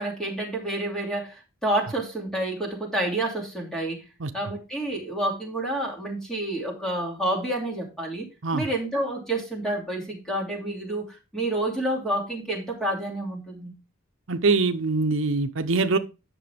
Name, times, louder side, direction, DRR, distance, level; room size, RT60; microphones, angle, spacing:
voice 1, 0.0-4.1 4.3-8.3 8.5-13.7, right 1 dB, 5° left, 2.7 m, -29 dB
voice 2, 14.3-16.0, right 3 dB, 75° right, 0.8 m, -23 dB
10.0 x 6.8 x 3.5 m
head